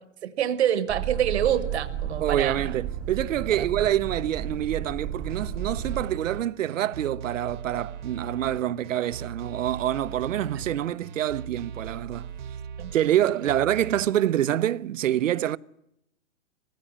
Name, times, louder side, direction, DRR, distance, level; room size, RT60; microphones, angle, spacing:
voice 1, 0.2-2.7 3.6-3.7 12.8-12.9 13.4-13.5, right 10 dB, 60° right, 1.2 m, -26 dB
Boat Water vehicle, 0.9-6.1, right 9 dB, 10° right, 0.8 m, -33 dB
voice 2, 2.2-12.3 12.9-15.6, right 11 dB, 80° right, 0.7 m, -26 dB
sound 1, 5.3-14.0, right 7 dB, 40° right, 1.0 m, -39 dB
19.5 x 15.5 x 9.9 m
hypercardioid pair, 175°, 38 cm